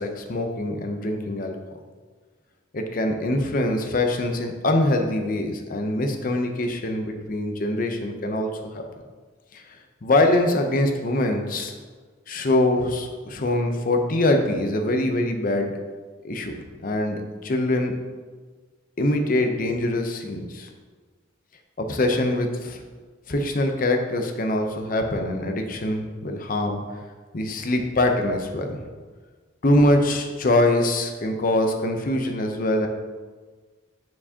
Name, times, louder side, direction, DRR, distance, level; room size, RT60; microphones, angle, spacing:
voice 1, 0.0-1.6 2.7-8.5 9.5-9.6 10.0-11.7 12.3-15.7 16.2-17.9 19.0-20.7 21.8-22.8 23.3-26.8 27.3-28.9 29.6-32.9, left 1 dB, 45° left, 4 dB, 0.6 m, -23 dB
9.6 x 4.6 x 2.8 m, 1.4 s
head